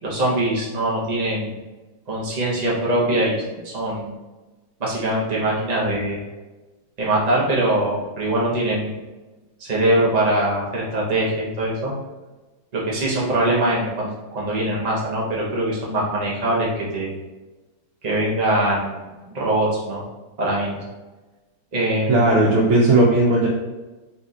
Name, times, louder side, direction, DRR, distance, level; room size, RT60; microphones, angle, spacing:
voice 1, 0.0-1.5 2.1-4.1 4.8-6.2 7.0-9.0 9.6-11.9 12.7-17.1 18.0-20.0 20.4-20.8 21.7-22.2, right 1 dB, 45° right, -5 dB, 0.5 m, -22 dB
voice 2, 22.1-23.5, right 2 dB, 80° right, -5 dB, 1.5 m, -16 dB
4.2 x 2.5 x 4.0 m, 1.2 s
omnidirectional pair, 2.2 m